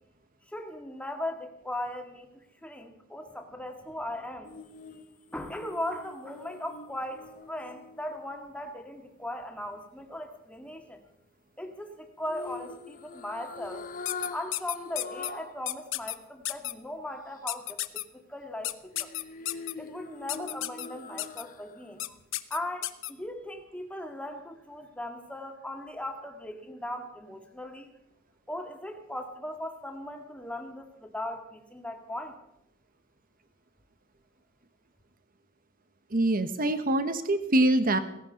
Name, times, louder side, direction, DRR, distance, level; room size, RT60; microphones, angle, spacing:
voice 1, 0.5-4.5 5.3-11.0 11.6-13.9 14.3-19.1 19.8-22.2 22.5-27.9 28.5-32.4, left 1 dB, 5° left, 4 dB, 2.0 m, -38 dB
sound 1, 4.4-8.7 12.3-15.6 16.0-16.1 18.9-21.8 22.2-22.3, left 4 dB, 40° left, 1.0 m, -43 dB
sound 2, 14.1-15.3 15.7-16.1 16.4-16.7 17.5-18.0 18.6-19.7 20.3-20.9 21.2-21.4 22.0-22.1 22.3-23.1, left 16 dB, 65° left, 0.8 m, -32 dB
voice 2, 36.1-38.0, right 1 dB, 45° right, 10 dB, 1.4 m, -24 dB
16.5 x 16.0 x 5.4 m, 0.82 s
head